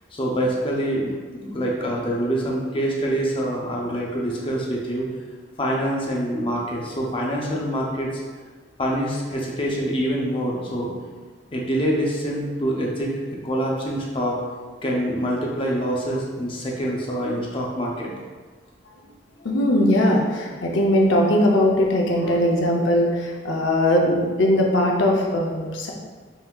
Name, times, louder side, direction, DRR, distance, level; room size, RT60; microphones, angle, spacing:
voice 1, 0.1-5.1 5.6-8.2 8.8-10.9 11.5-14.4 14.8-18.1, equal, 25° left, -3 dB, 0.6 m, -25 dB
voice 2, 19.4-25.9, left 1 dB, 75° left, -1 dB, 0.6 m, -20 dB
5.6 x 2.7 x 2.3 m, 1.4 s
head